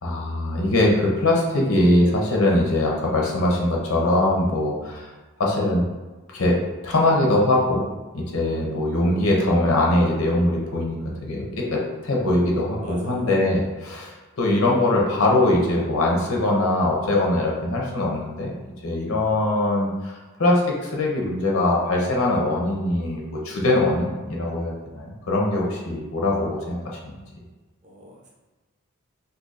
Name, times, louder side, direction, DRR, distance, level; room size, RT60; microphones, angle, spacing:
voice 1, 0.0-5.1 5.4-5.8 6.3-6.6 6.8-7.8 8.1-11.0 11.2-18.5 18.8-20.1 20.4-27.2, left 1 dB, 70° left, -2 dB, 0.7 m, -22 dB
voice 2, 12.8-13.2 27.8-28.3, equal, 30° right, -4 dB, 0.7 m, -42 dB
2.7 x 2.5 x 4.0 m, 1.2 s
head